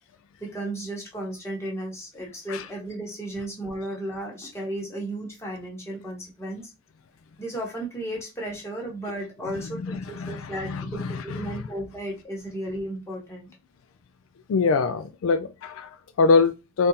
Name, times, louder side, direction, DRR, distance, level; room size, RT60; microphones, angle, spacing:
voice 1, 0.4-6.7 7.4-13.5, right 1 dB, 10° left, 1.3 m, -34 dB
voice 2, 9.8-11.6 14.5-16.9, left 4 dB, 65° left, 0.3 m, -24 dB
3.6 x 2.6 x 4.1 m
head